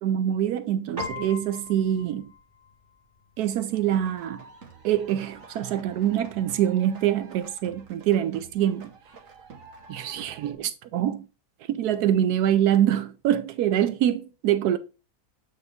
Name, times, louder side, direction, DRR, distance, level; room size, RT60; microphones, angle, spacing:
voice 1, 0.0-2.3 3.4-4.4 4.8-8.9 9.9-11.3 11.7-14.8, right 11 dB, 80° right, 1.1 m, -25 dB
Piano, 1.0-10.6, left 2 dB, 35° right, 2.3 m, -45 dB
sound 1, 3.7-10.5, right 5 dB, 60° right, 1.6 m, -48 dB
8.5 x 4.3 x 3.5 m
omnidirectional pair, 1.7 m